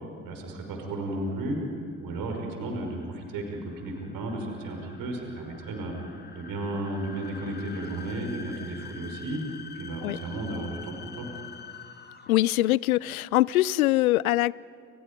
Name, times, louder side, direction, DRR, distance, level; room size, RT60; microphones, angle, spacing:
voice 1, 0.2-1.6 2.0-5.9 6.3-9.4 9.7-11.3, right 2 dB, 50° right, 2 dB, 5.5 m, -34 dB
sound 1, 1.9-12.6, left 6 dB, 25° left, 1.8 m, -46 dB
voice 2, 12.3-14.5, left 16 dB, 75° left, 24 dB, 0.5 m, -23 dB
30.0 x 27.5 x 5.3 m, 2.3 s
figure-of-eight pair, 55°, 43 cm